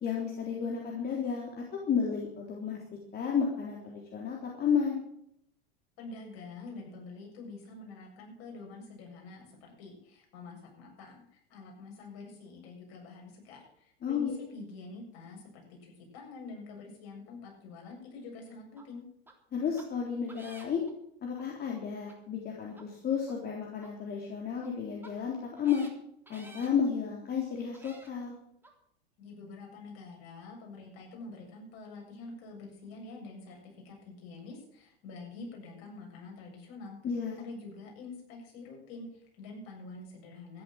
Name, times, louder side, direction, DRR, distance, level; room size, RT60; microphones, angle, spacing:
voice 1, 0.0-2.8 3.1-5.0 14.0-14.3 19.5-20.8 21.2-25.9 26.3-28.3 37.0-37.4, left 7 dB, 30° left, -1 dB, 3.6 m, -32 dB
voice 2, 6.0-19.0 29.2-37.0 37.4-40.6, left 3 dB, 50° left, 0 dB, 7.5 m, -46 dB
sound 1, 18.8-18.9 19.3-19.4 19.8-19.9 20.3-20.9 21.4-21.5 22.1-22.2 22.7-22.8 23.3-23.4 23.8-23.9 24.6-24.7 25.0-25.1 25.6-25.9 26.3-26.7 27.3-27.4 27.7-28.1 28.6-28.7, right 2 dB, 5° right, 3.4 m, -52 dB
13.5 x 11.0 x 7.8 m, 0.71 s
figure-of-eight pair, 85°, 30 cm